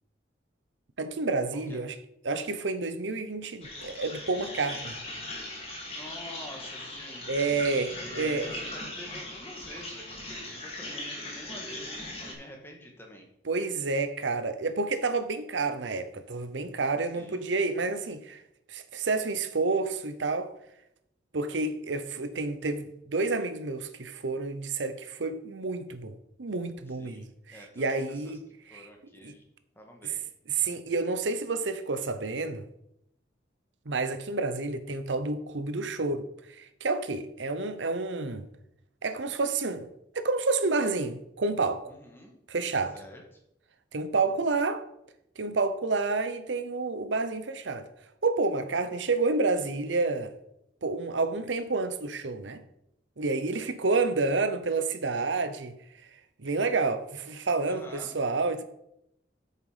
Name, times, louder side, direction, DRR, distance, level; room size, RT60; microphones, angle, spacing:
voice 1, 1.0-2.0 2.2-5.0 7.3-8.5 13.5-18.4 18.7-20.5 21.3-28.4 28.7-28.9 29.2-29.4 30.0-30.1 30.5-32.6 33.9-36.3 36.6-38.5 39.0-39.9 40.1-41.9 42.5-43.0 43.9-44.8 45.4-47.9 48.2-50.3 50.8-52.6 53.2-55.8 56.4-58.6, right 3 dB, 90° right, 0.8 m, -29 dB
sound 1, 3.6-12.3, left 1 dB, 35° left, 2.5 m, -39 dB
voice 2, 5.9-7.3 8.0-13.3 17.1-17.4 26.9-28.3 28.7-29.4 29.7-30.3 41.9-42.3 42.9-43.2 44.3-44.5 48.8-48.9 57.7-58.1, left 1 dB, 10° left, 1.6 m, -47 dB
9.1 x 6.7 x 5.0 m
head